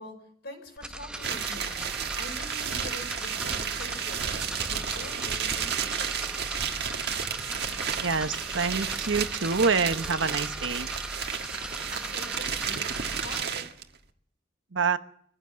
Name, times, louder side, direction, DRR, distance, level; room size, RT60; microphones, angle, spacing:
voice 1, 0.0-6.3 11.9-12.9 13.2-13.7, left 1 dB, 60° left, 5 dB, 5.6 m, -44 dB
sound 1, 0.8-13.4, right 1 dB, 5° right, 0.9 m, -38 dB
sound 2, 1.2-13.8, right 7 dB, 60° right, 1.7 m, -32 dB
voice 2, 8.0-10.9 14.7-15.0, right 5 dB, 90° right, 10 dB, 1.1 m, -26 dB
23.0 x 15.5 x 7.6 m, 0.68 s
head